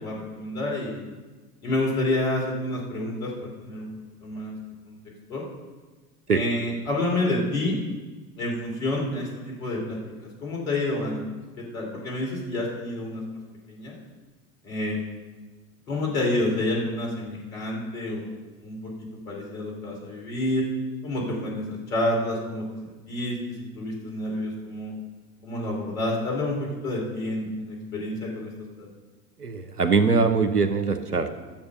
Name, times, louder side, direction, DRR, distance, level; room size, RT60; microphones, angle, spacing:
voice 1, 0.0-1.0 1.6-3.9 4.2-4.5 4.8-4.9 5.3-5.4 6.3-7.8 8.4-11.2 11.6-13.2 13.7-14.0 14.6-15.0 15.9-20.6 21.0-24.9 25.4-28.5 28.8-28.9, left 1 dB, 65° left, -2 dB, 3.4 m, -29 dB
voice 2, 29.4-31.3, right 4 dB, 90° right, 9 dB, 0.9 m, -22 dB
12.0 x 7.3 x 5.5 m, 1.3 s
figure-of-eight pair, 80°, 45 cm